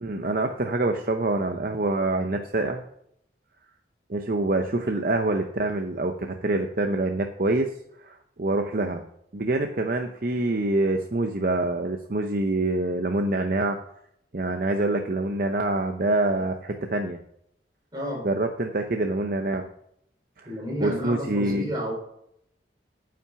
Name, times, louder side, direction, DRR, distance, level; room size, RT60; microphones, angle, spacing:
voice 1, 0.0-2.8 4.1-7.7 8.0-9.0 9.3-13.8 14.3-17.2 18.2-19.7 20.4-20.5 20.8-21.7, right 2 dB, 50° right, 5 dB, 0.7 m, -26 dB
voice 2, 17.9-18.3 20.4-21.9, equal, 25° right, -1 dB, 3.8 m, -31 dB
9.3 x 6.0 x 7.0 m, 0.74 s
head